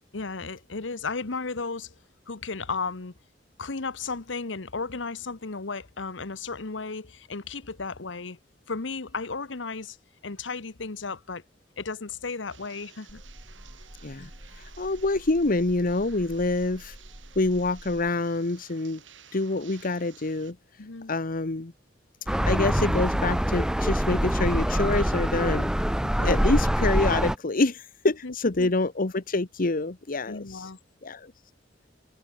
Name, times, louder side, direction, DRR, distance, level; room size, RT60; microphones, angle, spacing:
voice 1, 0.1-1.9 2.3-3.1 3.6-8.4 8.7-10.0 10.2-11.4 11.8-13.2 20.8-21.1 26.0-26.5 28.2-28.7 30.3-30.8, left 4 dB, 75° left, 1.2 m, -34 dB
sound 1, 12.5-20.5, right 8 dB, 80° right, 5.9 m, -54 dB
sound 2, 13.1-18.1, equal, 20° right, 3.5 m, -47 dB
voice 2, 14.8-16.9 17.4-19.0 19.3-20.6 21.1-21.7 22.4-25.7 26.2-30.6 31.0-31.3, left 2 dB, 50° left, 1.1 m, -26 dB
sound 3, 22.3-27.4, equal, 5° right, 0.4 m, -24 dB
head